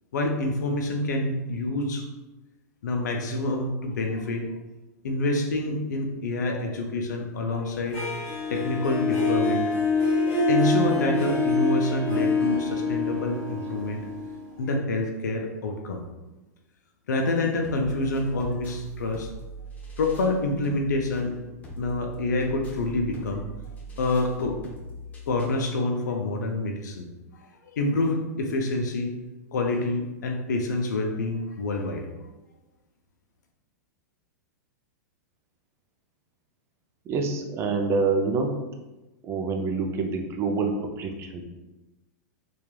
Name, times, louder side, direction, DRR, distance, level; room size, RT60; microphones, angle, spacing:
voice 1, 0.1-2.1 2.8-4.5 5.0-8.0 8.5-9.7 10.5-14.0 14.6-16.0 17.1-19.3 20.0-21.3 21.8-23.5 24.0-24.6 25.3-27.1 27.6-29.1 29.5-32.1, left 2 dB, 80° left, 3 dB, 0.4 m, -27 dB
Harp, 7.9-14.8, left 3 dB, 35° left, 1.4 m, -25 dB
sound 1, 17.6-25.6, right 3 dB, 15° left, 0.6 m, -40 dB
voice 2, 37.1-38.5 39.2-41.5, right 4 dB, 30° right, 3 dB, 0.4 m, -26 dB
2.9 x 2.3 x 2.2 m, 1.1 s
hypercardioid pair, 115°, 9 cm